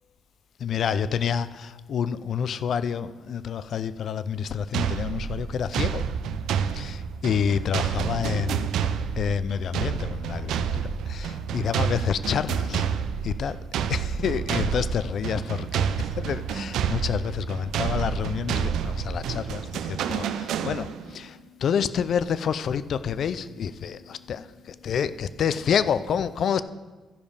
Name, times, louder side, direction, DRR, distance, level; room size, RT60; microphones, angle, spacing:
voice 1, 0.6-6.0 6.7-8.7 9.2-12.8 13.2-13.6 13.9-26.6, left 7 dB, 60° left, 14 dB, 0.4 m, -28 dB
sound 1, 4.7-21.2, right 7 dB, 85° right, 0.5 m, -29 dB
14.0 x 5.2 x 5.0 m, 1.3 s
cardioid pair, 90°, 0 cm